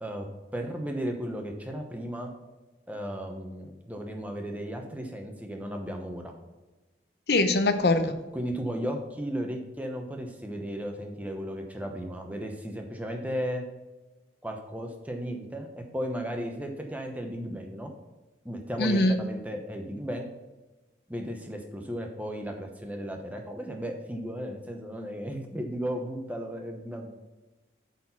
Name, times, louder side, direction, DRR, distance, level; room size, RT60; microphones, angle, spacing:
voice 1, 0.0-2.3 2.9-6.3 8.3-13.6 14.4-17.9 18.4-20.3 21.1-27.1, equal, 10° right, 3 dB, 0.8 m, -35 dB
voice 2, 7.3-8.1 18.8-19.1, left 2 dB, 60° left, 8 dB, 0.7 m, -22 dB
8.2 x 4.2 x 5.8 m, 1.1 s
head